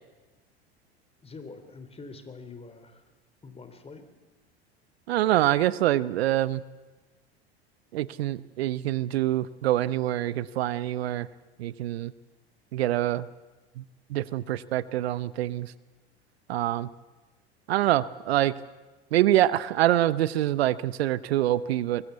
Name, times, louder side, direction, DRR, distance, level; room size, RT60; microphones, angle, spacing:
voice 1, 1.2-3.0 3.4-4.0, left 4 dB, 20° left, 8 dB, 3.5 m, -45 dB
voice 2, 5.1-6.6 7.9-11.3 11.6-12.1 12.7-13.3 13.8-13.9 14.1-15.7 16.5-16.9 17.7-18.5 19.1-22.0, right 14 dB, 70° right, 18 dB, 0.9 m, -25 dB
23.0 x 22.0 x 8.2 m, 1.2 s
hypercardioid pair, 80°, 32 cm